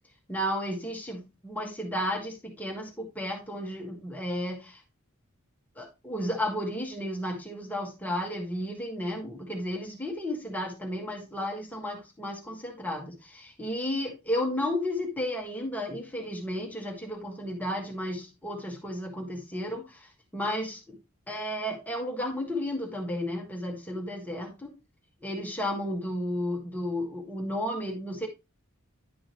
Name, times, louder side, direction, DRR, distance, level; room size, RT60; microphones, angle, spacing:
voice 1, 0.3-4.8 5.7-21.0 21.3-24.7 25.2-28.3, left 1 dB, 10° left, 0 dB, 1.5 m, -33 dB
10.5 x 5.1 x 3.0 m, 0.26 s
head